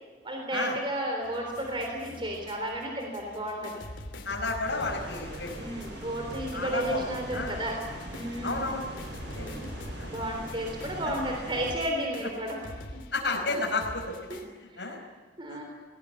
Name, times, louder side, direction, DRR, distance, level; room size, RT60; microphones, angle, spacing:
voice 1, 0.2-3.8 5.6-7.8 8.1-8.6 9.3-9.7 10.1-12.6 14.3-14.4 14.7-14.9 15.4-15.6, right 1 dB, 30° right, 1 dB, 3.5 m, -33 dB
sound 1, 1.2-14.5, left 1 dB, 90° left, 3.0 m, -45 dB
voice 2, 4.2-5.7 6.5-7.1 7.3-7.6 8.4-8.9 9.4-9.5 10.0-10.1 13.1-14.1 14.6-15.0 15.5-15.6, left 3 dB, 70° left, -1 dB, 4.8 m, -31 dB
sound 2, 4.6-11.7, equal, 85° right, 7.9 m, -41 dB
20.0 x 18.5 x 9.7 m, 1.4 s
head